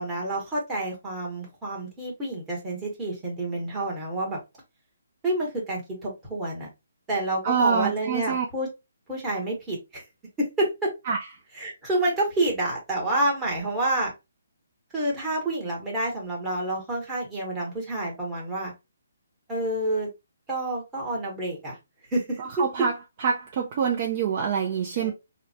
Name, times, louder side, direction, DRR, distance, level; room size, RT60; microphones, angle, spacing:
voice 1, 0.0-4.4 5.2-6.7 7.1-8.7 9.1-10.0 10.4-10.9 11.5-14.1 14.9-18.7 19.5-20.1 20.5-21.8 22.1-22.6 25.0-25.1, right 1 dB, 10° right, 1.1 m, -28 dB
voice 2, 7.4-8.5 11.1-11.2 22.6-22.9 23.2-25.1, right 6 dB, 35° right, 0.5 m, -25 dB
3.7 x 2.1 x 2.7 m
hypercardioid pair, 165°, 0 cm